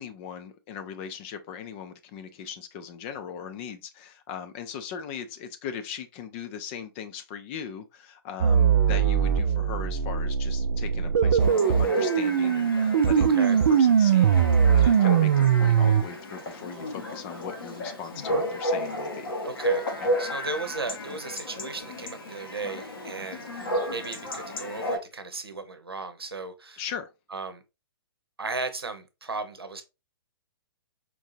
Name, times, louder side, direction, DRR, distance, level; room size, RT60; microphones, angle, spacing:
voice 1, 0.0-14.3 14.7-19.3 20.0-20.1 26.8-27.1, left 7 dB, 30° left, 0.4 m, -39 dB
sound 1, 8.4-16.0, right 7 dB, 55° right, 0.4 m, -21 dB
Chatter / Bark / Livestock farm animals working animals, 11.4-25.0, equal, 65° left, 1.3 m, -33 dB
voice 2, 13.2-13.6 19.4-26.8 27.3-27.6 28.4-29.8, right 3 dB, 80° right, 0.8 m, -36 dB
4.5 x 2.7 x 2.6 m
figure-of-eight pair, 120°, 13 cm